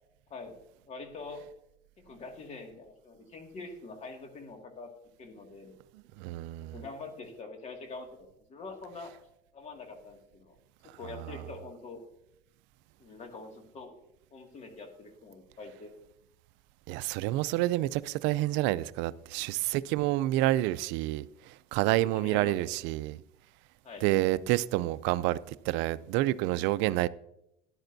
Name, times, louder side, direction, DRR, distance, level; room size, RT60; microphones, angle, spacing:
voice 1, 0.9-1.4 2.0-4.9 5.2-5.7 6.6-9.1 9.5-10.6 11.0-12.0 13.0-13.9 14.3-15.9 19.4-19.5 22.0-22.8 23.8-24.1, left 3 dB, 40° left, 2.1 m, -44 dB
voice 2, 6.2-6.8 16.9-23.2 24.0-27.1, right 16 dB, 80° right, 0.4 m, -28 dB
13.5 x 11.0 x 2.7 m
cardioid pair, 120°, 18 cm